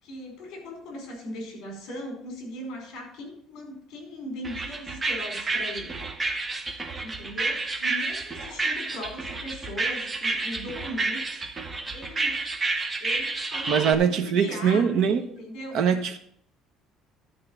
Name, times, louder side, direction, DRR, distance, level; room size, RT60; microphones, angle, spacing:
voice 1, 0.0-6.0 7.0-11.4 11.9-12.4 13.0-15.8, left 1 dB, 55° left, 4.6 m, -39 dB
sound 1, 4.4-13.9, right 3 dB, 15° right, 0.8 m, -30 dB
voice 2, 13.7-15.2 15.7-16.2, right 7 dB, 50° right, 1.1 m, -22 dB
11.5 x 4.8 x 7.4 m
cardioid pair, 180°, 0 cm